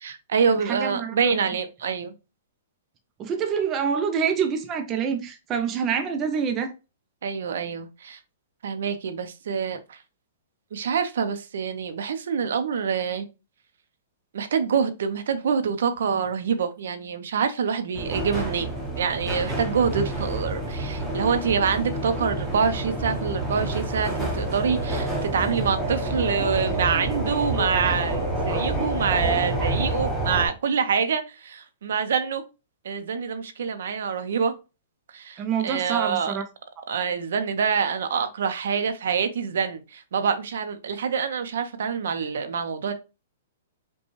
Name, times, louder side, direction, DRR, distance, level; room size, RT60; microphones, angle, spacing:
voice 1, 0.0-2.1 7.2-8.2 8.6-10.0 10.7-13.3 14.3-18.7 19.0-32.4 32.8-34.5 35.1-36.4 36.9-42.9, right 6 dB, 70° right, 0.7 m, -26 dB
voice 2, 0.7-1.3 3.2-6.7 35.4-36.4, right 7 dB, 20° right, 0.4 m, -26 dB
sound 1, 17.9-30.5, right 1 dB, ahead, 0.8 m, -28 dB
5.2 x 2.3 x 3.1 m
hypercardioid pair, 170°, 0 cm